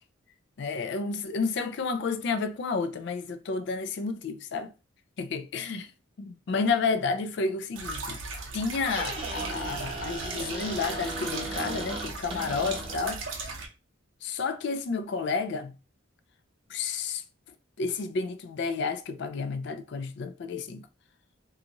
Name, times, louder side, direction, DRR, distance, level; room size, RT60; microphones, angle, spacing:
voice 1, 0.6-4.7 5.2-5.9 6.2-8.2 8.5-13.2 14.2-15.7 16.7-17.2 17.8-20.9, left 4 dB, 55° left, 0.3 m, -31 dB
sound 1, 7.7-13.7, right 3 dB, 70° right, 0.6 m, -38 dB
Squeak, 8.6-13.2, right 2 dB, 25° right, 0.6 m, -37 dB
2.5 x 2.4 x 2.8 m
head